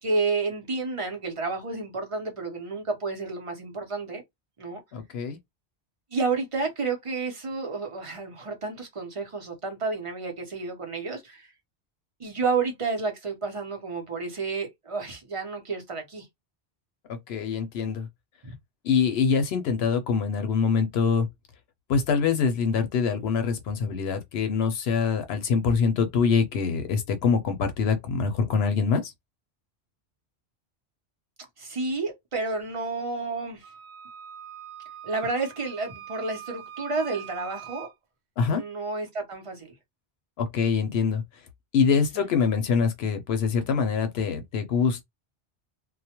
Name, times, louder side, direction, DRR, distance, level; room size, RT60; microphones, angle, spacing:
voice 1, 0.0-4.2 4.6-4.8 6.1-11.5 12.2-16.3 18.4-18.5 31.6-33.7 35.0-37.9 38.5-39.7 42.1-42.3, right 4 dB, 35° right, 0.7 m, -30 dB
voice 2, 4.9-5.4 17.1-18.1 18.8-21.3 21.9-29.1 38.4-38.6 40.4-41.2 41.7-45.0, left 6 dB, 75° left, 0.8 m, -24 dB
Wind instrument woodwind instrument, 33.6-37.9, right 10 dB, 85° right, 0.9 m, -43 dB
2.2 x 2.1 x 2.8 m
omnidirectional pair, 1.1 m